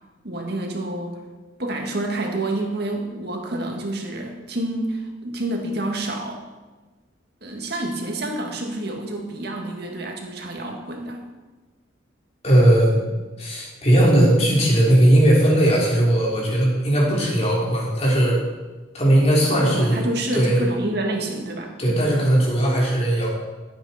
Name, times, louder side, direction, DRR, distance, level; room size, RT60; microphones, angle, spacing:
voice 1, 0.2-1.2 1.6-6.4 7.4-11.2 19.5-22.1, right 1 dB, 55° right, 1 dB, 2.0 m, -28 dB
voice 2, 12.4-13.0 13.4-18.4 18.9-20.0 20.3-20.6 21.8-23.3, right 1 dB, 35° left, -4 dB, 3.6 m, -18 dB
15.5 x 8.7 x 4.3 m, 1.3 s
head